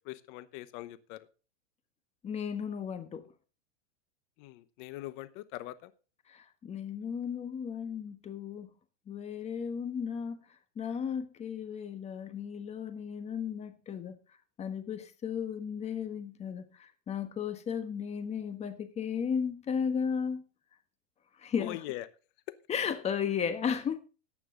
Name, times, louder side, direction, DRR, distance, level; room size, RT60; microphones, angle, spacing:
voice 1, 0.0-1.3 4.4-5.9 21.6-22.1, left 16 dB, 40° left, 1.0 m, -42 dB
voice 2, 2.2-3.3 6.3-8.7 9.1-10.4 10.8-14.2 14.6-20.4 21.4-21.8 22.7-24.0, left 7 dB, 15° left, 1.3 m, -35 dB
14.5 x 9.3 x 3.8 m
supercardioid pair, 145°, 37 cm